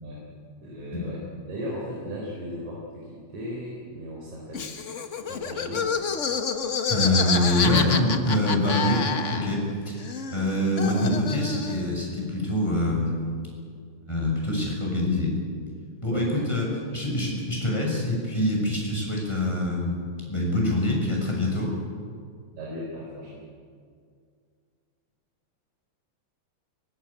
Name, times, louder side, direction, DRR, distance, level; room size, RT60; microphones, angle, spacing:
voice 1, 0.6-1.2 1.5-4.7 5.2-5.9 16.1-16.7 22.6-23.4, equal, 90° right, -4 dB, 5.6 m, -36 dB
Laughter, 4.5-9.7 10.0-11.9, left 5 dB, 60° left, 0.7 m, -28 dB
voice 2, 6.9-10.0 10.3-13.2 14.1-15.3 16.0-16.7 16.9-20.0 20.3-21.7, left 1 dB, 10° left, -2 dB, 6.5 m, -25 dB
23.0 x 21.0 x 8.7 m, 2.2 s
omnidirectional pair, 3.3 m